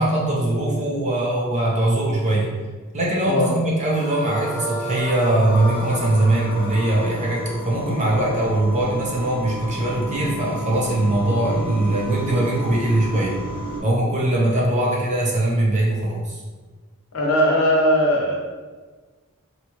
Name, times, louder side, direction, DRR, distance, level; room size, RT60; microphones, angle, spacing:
voice 1, 0.0-2.5 2.9-13.4 13.8-16.4, right 1 dB, 35° right, -4 dB, 0.6 m, -21 dB
voice 2, 3.3-3.6 17.1-18.4, equal, 70° left, -2 dB, 0.7 m, -19 dB
sound 1, 3.9-9.1, equal, 40° left, 0.9 m, -32 dB
sound 2, 5.5-13.8, right 1 dB, 5° left, 0.7 m, -32 dB
2.8 x 2.4 x 2.9 m, 1.4 s
head